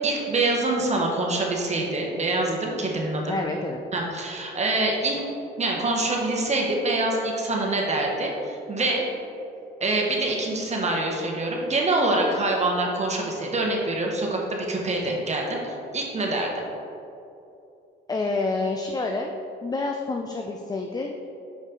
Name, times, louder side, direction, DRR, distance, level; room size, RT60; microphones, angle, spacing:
voice 1, 0.0-3.4 3.9-5.2 5.6-9.1 9.8-16.5, right 2 dB, 35° right, 0 dB, 1.2 m, -25 dB
voice 2, 3.3-3.8 18.1-19.3 19.6-21.1, left 3 dB, 20° left, 3 dB, 0.4 m, -28 dB
5.8 x 5.2 x 3.8 m, 2.7 s
cardioid pair, 90°, 20 cm